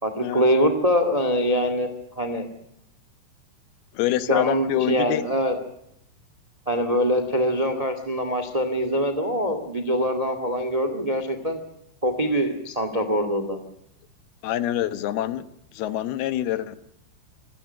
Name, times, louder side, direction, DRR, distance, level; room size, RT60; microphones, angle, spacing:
voice 1, 0.0-2.5 4.3-5.5 6.6-11.6 12.0-13.6, equal, 20° right, 9 dB, 1.1 m, -24 dB
voice 2, 3.9-5.2 14.4-16.8, left 13 dB, 75° left, 12 dB, 3.0 m, -26 dB
27.5 x 18.5 x 5.8 m, 0.77 s
omnidirectional pair, 4.8 m